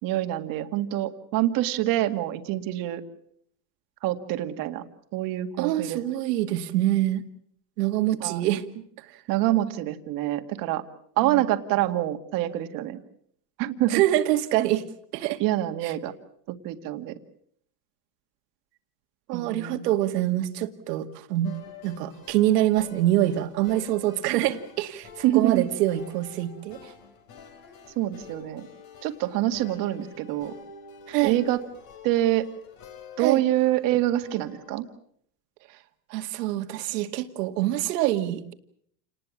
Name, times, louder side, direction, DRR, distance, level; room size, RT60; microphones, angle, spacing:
voice 1, 0.0-3.0 4.0-4.8 5.1-6.0 8.2-8.4 9.3-10.8 11.2-13.0 13.6-14.0 15.4-16.1 16.5-17.1 19.3-19.9 25.2-25.6 28.0-28.7 29.0-30.5 31.2-31.6 32.0-32.5 33.2-34.9, right 14 dB, 40° right, 8 dB, 2.1 m, -26 dB
voice 2, 5.6-7.2 7.8-8.6 11.2-11.4 13.9-14.8 15.1-15.4 15.8-15.9 19.3-21.5 21.8-26.8 31.1-31.4 33.2-33.4 36.1-38.5, right 14 dB, 75° right, 8 dB, 2.3 m, -25 dB
sound 1, 21.4-34.8, left 5 dB, 45° left, 4.4 m, -48 dB
29.0 x 20.0 x 7.4 m, 0.66 s
supercardioid pair, 150°, 49 cm